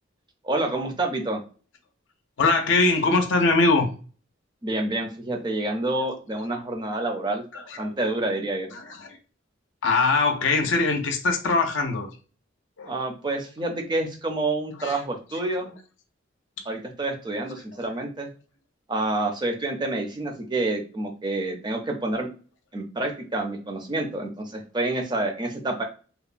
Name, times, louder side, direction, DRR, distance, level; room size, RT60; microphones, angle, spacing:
voice 1, 0.4-1.4 4.6-7.4 7.8-8.7 12.9-15.7 16.7-18.3 18.9-22.3 22.7-25.8, right 2 dB, 20° right, 3 dB, 0.5 m, -28 dB
voice 2, 2.4-3.9 7.5-7.9 8.7-9.2 9.8-12.1 12.8-13.0 14.8-15.0 16.6-16.7, left 3 dB, 65° left, 4 dB, 0.5 m, -22 dB
2.9 x 2.0 x 2.4 m, 0.37 s
head